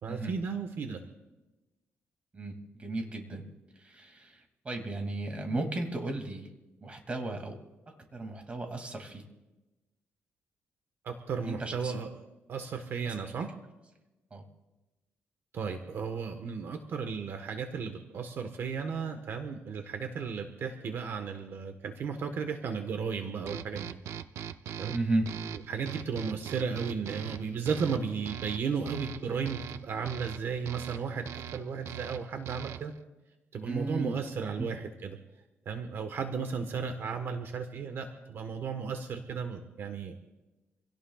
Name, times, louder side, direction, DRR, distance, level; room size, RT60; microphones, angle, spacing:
voice 1, 0.0-1.0 11.0-12.1 12.5-13.5 15.5-24.0 24.8-25.0 25.7-32.9 33.5-35.2 35.6-40.2, right 5 dB, 60° right, 6 dB, 1.3 m, -34 dB
voice 2, 2.3-3.5 3.7-6.5 6.8-7.6 7.9-9.2 11.4-11.9 13.0-13.3 14.3-14.4 24.9-25.3 33.6-34.2 34.6-34.7, right 2 dB, 25° right, 4 dB, 2.5 m, -35 dB
sound 1, 23.5-33.0, right 9 dB, 80° right, 0.6 m, -41 dB
27.0 x 17.5 x 2.4 m, 1.0 s
cardioid pair, 120°, 5 cm